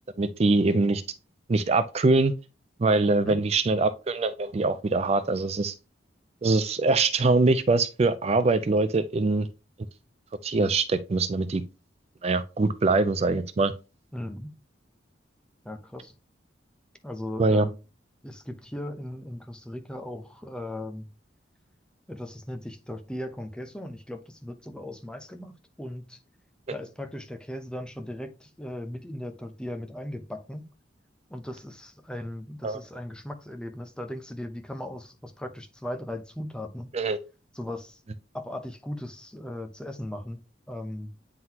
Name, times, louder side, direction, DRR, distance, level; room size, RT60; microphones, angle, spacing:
voice 1, 0.2-1.0 1.5-2.3 2.8-5.7 6.4-9.5 10.4-11.6 12.2-13.7 17.4-17.7 32.6-32.8 36.9-37.2, right 3 dB, 35° right, 0.4 m, -23 dB
voice 2, 14.1-14.5 15.6-16.1 17.0-17.8 18.2-21.1 22.1-26.2 26.7-30.7 31.3-36.9 37.5-38.0 38.3-40.4 40.7-41.1, left 1 dB, 5° left, 0.7 m, -37 dB
9.3 x 3.8 x 2.8 m
head